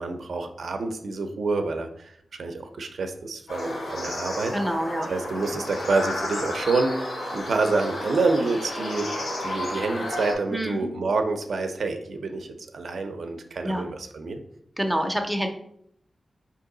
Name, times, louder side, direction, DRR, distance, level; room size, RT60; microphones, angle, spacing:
voice 1, 0.0-4.6 5.1-9.1 9.4-14.4, right 3 dB, 75° right, 6 dB, 0.5 m, -28 dB
sound 1, 3.5-10.3, left 1 dB, 90° left, 1.7 m, -32 dB
voice 2, 4.5-5.1 10.5-10.9 13.6-13.8 14.8-15.5, equal, ahead, 3 dB, 0.4 m, -26 dB
4.6 x 2.8 x 3.7 m, 0.70 s
wide cardioid pair, 175°, 0 cm